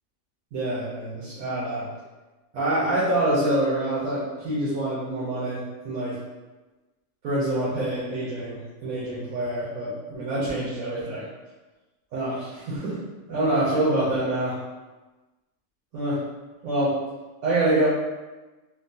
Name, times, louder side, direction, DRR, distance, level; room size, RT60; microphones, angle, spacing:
voice 1, 0.5-1.9 2.5-6.2 7.2-11.2 12.1-13.0 13.3-14.6 15.9-16.2 16.6-17.0 17.4-17.9, right 1 dB, 85° right, -10 dB, 1.2 m, -26 dB
3.3 x 2.2 x 2.6 m, 1.2 s
omnidirectional pair, 1.5 m